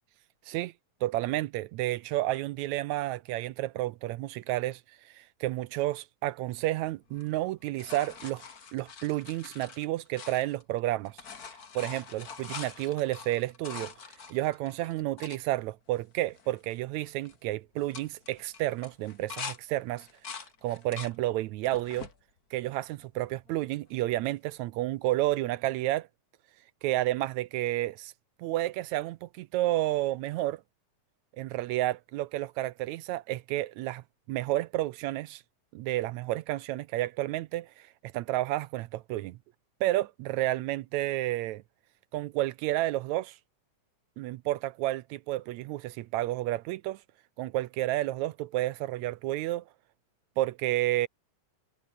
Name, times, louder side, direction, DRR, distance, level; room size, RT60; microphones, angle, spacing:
voice 1, 1.0-8.4 8.7-11.2 11.8-13.9 14.3-20.1 20.6-22.1 22.5-26.1 26.8-28.1 28.4-30.6 31.4-35.4 35.7-39.4 39.8-41.6 42.1-43.4 44.2-47.0 47.4-49.6 50.4-51.1, right 16 dB, 80° right, 1.8 m, -31 dB
sound 1, 7.1-10.8 11.0-15.4 16.0-16.1 16.3-16.7 17.0-17.4 17.8-19.6 20.0-21.2 21.6-22.2 22.8-23.5 25.1-25.2, left 6 dB, 35° left, 1.9 m, -44 dB
omnidirectional pair, 3.6 m